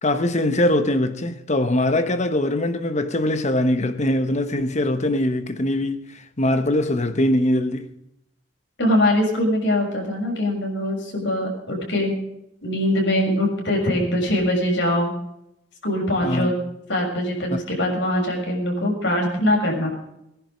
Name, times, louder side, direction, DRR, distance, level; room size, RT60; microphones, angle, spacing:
voice 1, 0.0-7.9 16.2-16.5 17.5-17.6, left 1 dB, 40° left, 1.2 m, -22 dB
voice 2, 8.8-12.1 12.6-15.1 15.8-16.6 16.9-19.9, left 1 dB, 65° left, 6.5 m, -22 dB
20.0 x 11.0 x 5.2 m
head